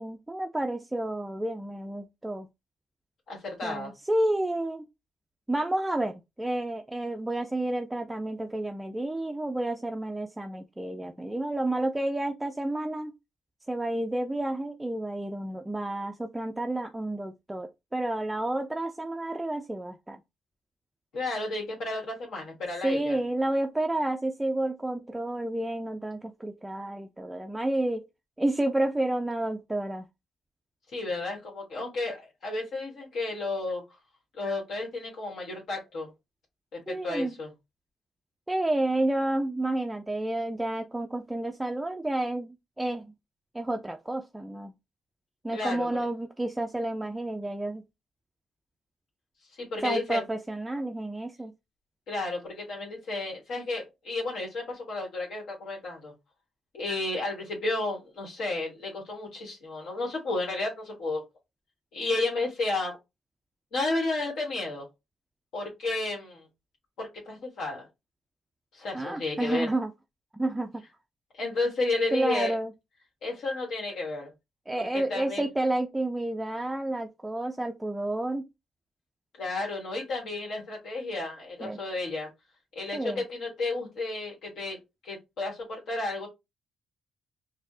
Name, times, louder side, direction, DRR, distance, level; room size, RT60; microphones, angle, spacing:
voice 1, 0.0-2.5 3.6-4.9 5.5-13.1 13.7-20.2 22.8-28.0 28.4-30.1 36.9-37.3 38.5-43.1 43.5-44.7 45.4-47.8 49.8-51.5 68.9-69.9 70.3-70.8 72.1-72.7 74.7-78.5 81.6-81.8 82.9-83.2, right 1 dB, 10° right, 0.3 m, -30 dB
voice 2, 3.3-3.9 21.1-23.2 30.9-33.8 34.3-36.1 36.7-37.5 45.5-45.9 49.6-50.2 52.1-56.1 56.7-61.2 61.9-63.0 63.7-64.9 65.5-66.4 67.0-67.9 68.7-69.7 71.3-72.5 73.2-74.3 74.9-75.4 79.4-82.3 82.7-86.3, left 2 dB, 70° left, 1.3 m, -32 dB
4.2 x 2.0 x 2.6 m
cardioid pair, 90°, 0 cm